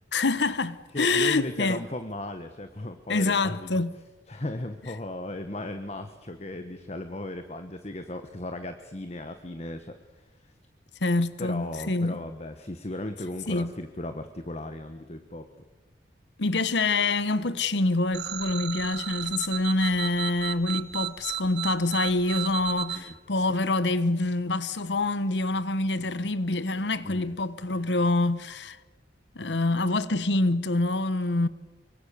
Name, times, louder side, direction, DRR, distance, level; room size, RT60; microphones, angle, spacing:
voice 1, 0.1-1.8 3.1-3.9 11.0-12.2 13.5-13.7 16.4-28.8 29.3-31.5, left 2 dB, 85° left, 1.1 m, -26 dB
voice 2, 0.9-3.7 4.3-10.5 11.4-15.6 22.9-23.1 27.0-27.4, left 1 dB, 40° left, 1.2 m, -36 dB
sound 1, 18.1-23.0, right 11 dB, 75° right, 2.1 m, -33 dB
25.0 x 24.0 x 6.9 m
head